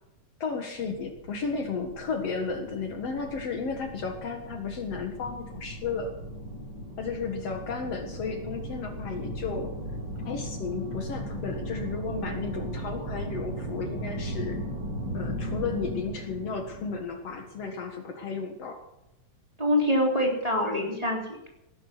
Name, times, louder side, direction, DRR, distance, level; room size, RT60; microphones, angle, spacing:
voice 1, 0.4-6.1 7.0-9.7 10.2-14.6 15.1-18.8, left 4 dB, 60° left, 4 dB, 2.6 m, -33 dB
sound 1, 0.8-17.8, equal, 40° right, 5.8 m, -37 dB
voice 2, 19.6-21.5, left 1 dB, 10° right, -1 dB, 3.4 m, -25 dB
18.5 x 11.0 x 6.1 m, 0.86 s
omnidirectional pair, 3.4 m